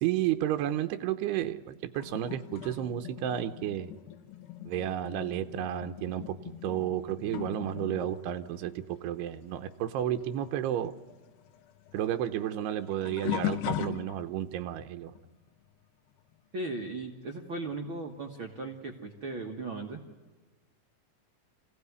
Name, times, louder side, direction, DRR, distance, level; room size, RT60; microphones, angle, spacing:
voice 1, 0.0-4.0 4.7-10.9 11.9-15.1, right 11 dB, 90° right, 8 dB, 3.0 m, -32 dB
sound 1, 1.9-9.9 10.2-14.5 15.1-15.5 17.7-17.8 18.7-18.8, left 14 dB, 75° left, 2.5 m, -40 dB
voice 2, 16.5-20.0, right 2 dB, 65° right, 1 dB, 1.2 m, -37 dB
25.5 x 17.0 x 9.5 m, 1.3 s
omnidirectional pair, 4.6 m